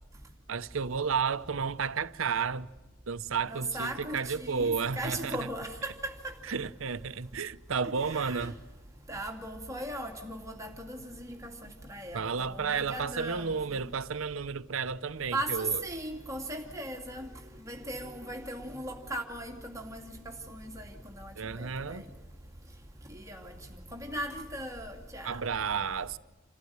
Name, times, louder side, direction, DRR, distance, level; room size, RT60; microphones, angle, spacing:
voice 1, 0.5-2.7 3.1-5.4 6.5-8.6 12.1-15.8 21.4-22.1 25.2-26.2, right 5 dB, 85° right, 0.8 m, -32 dB
voice 2, 3.4-6.3 8.0-8.5 9.1-11.5 11.8-13.9 15.3-17.3 17.6-22.0 23.1-25.4, right 1 dB, 15° right, 2.5 m, -38 dB
28.5 x 15.0 x 9.5 m
head